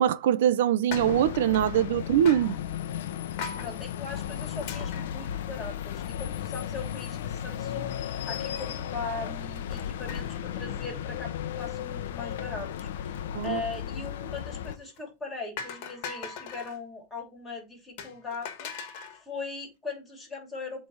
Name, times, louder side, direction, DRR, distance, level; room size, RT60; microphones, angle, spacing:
voice 1, 0.0-2.6 13.3-13.6, right 10 dB, 75° right, 0.7 m, -23 dB
sound 1, 0.9-14.8, left 10 dB, 80° left, 0.8 m, -35 dB
sound 2, 0.9-1.9 2.3-2.6 3.4-3.7 4.6-6.0 6.4-6.5 6.7-6.8 8.3-8.8 9.7-10.5 10.8-11.1 14.7-15.0 15.6-16.8 18.0-19.2, left 6 dB, 50° left, 1.6 m, -41 dB
voice 2, 3.6-20.9, left 3 dB, 10° left, 3.0 m, -40 dB
8.0 x 3.4 x 5.6 m
supercardioid pair, 160°, 0 cm